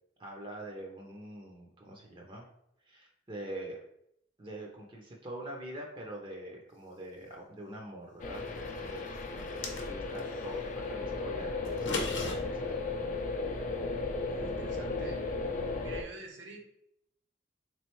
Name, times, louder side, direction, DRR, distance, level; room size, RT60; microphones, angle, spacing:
voice 1, 0.2-2.5 2.9-3.8 4.4-13.0, right 1 dB, 25° right, 0 dB, 0.6 m, -44 dB
sound 1, 8.2-16.0, left 3 dB, 45° left, 0.4 m, -35 dB
sound 2, 9.4-10.3 11.6-12.3, left 3 dB, 80° left, 0.7 m, -36 dB
voice 2, 14.1-15.3 15.8-16.6, right 2 dB, 70° right, 2 dB, 0.8 m, -48 dB
3.7 x 3.1 x 3.0 m, 0.76 s
head